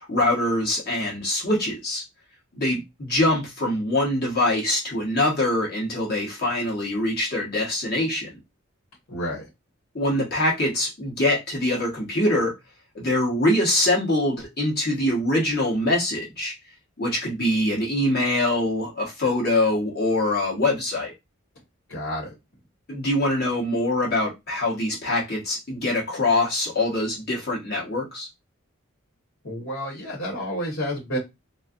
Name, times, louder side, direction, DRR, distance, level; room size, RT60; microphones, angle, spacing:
voice 1, 0.0-2.0 2.5-8.3 9.9-12.5 12.9-16.5 17.0-21.1 22.9-28.3, left 1 dB, 50° left, 1.0 m, -24 dB
voice 2, 9.1-9.4 21.9-22.3 29.4-31.2, equal, 85° left, 1.3 m, -30 dB
2.6 x 2.4 x 2.4 m
head